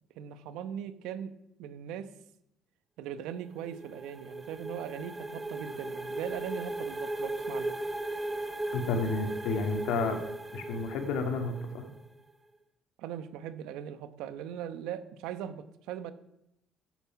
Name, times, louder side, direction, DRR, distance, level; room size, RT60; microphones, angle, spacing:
voice 1, 0.2-1.3 1.6-2.1 3.0-7.8 13.0-16.1, right 9 dB, 90° right, 12 dB, 1.1 m, -39 dB
sound 1, 3.4-12.1, right 2 dB, 10° right, 1.0 m, -37 dB
voice 2, 8.7-10.2 10.5-11.8, left 3 dB, 80° left, 5 dB, 2.3 m, -31 dB
14.5 x 8.8 x 5.8 m, 0.81 s
cardioid pair, 130°, 0 cm